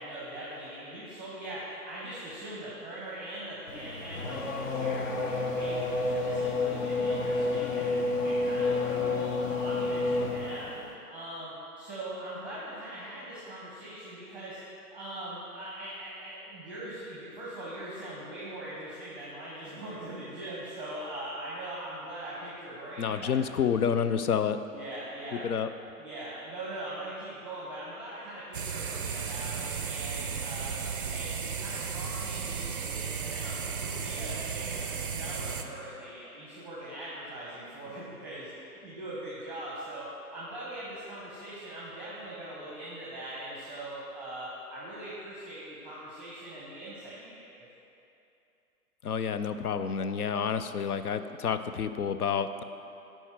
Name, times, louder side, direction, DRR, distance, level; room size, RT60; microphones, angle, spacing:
voice 1, 0.0-8.0 8.2-10.7 11.1-14.6 14.9-23.4 24.7-25.5 26.0-30.8 31.1-38.5 38.8-47.7, right 1 dB, 5° right, -7 dB, 0.8 m, -41 dB
Race car auto racing / Accelerating revving vroom, 3.7-10.9, left 3 dB, 55° left, 1.0 m, -30 dB
voice 2, 23.0-24.6 25.3-25.7 49.0-52.6, left 7 dB, 75° left, 11 dB, 0.5 m, -29 dB
sound 1, 28.5-35.6, right 6 dB, 40° right, 0.4 m, -34 dB
9.8 x 4.5 x 4.4 m, 2.8 s
figure-of-eight pair, 120°, 45 cm